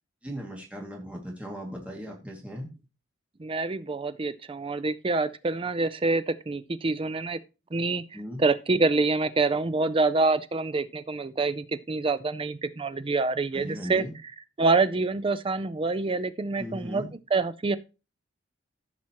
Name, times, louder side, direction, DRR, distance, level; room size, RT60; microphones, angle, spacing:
voice 1, 0.2-2.7 8.1-8.4 13.5-14.1 16.6-17.1, equal, 5° right, 2.2 m, -37 dB
voice 2, 3.4-7.4 7.7-8.0 8.4-14.0 14.6-17.8, right 3 dB, 30° right, 0.5 m, -26 dB
15.0 x 6.0 x 2.9 m
head